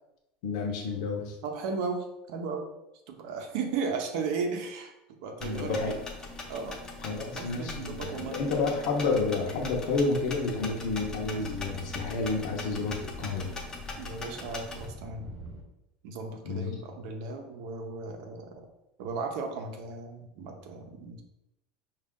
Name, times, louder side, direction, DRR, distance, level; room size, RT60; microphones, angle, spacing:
voice 1, 0.4-1.4 5.4-6.0 7.0-13.6 16.4-16.7, left 3 dB, 60° left, -1 dB, 0.7 m, -30 dB
voice 2, 1.4-2.6 3.1-4.9 5.2-5.8 6.5-6.8 7.3-8.6 14.0-15.3 16.0-18.5 19.0-21.2, right 4 dB, 60° right, 4 dB, 0.7 m, -35 dB
sound 1, 5.4-14.9, left 3 dB, 15° left, 0.5 m, -41 dB
sound 2, 9.6-15.6, equal, 30° right, 0.6 m, -45 dB
5.1 x 2.4 x 3.6 m, 0.88 s
cardioid pair, 170°, 4 cm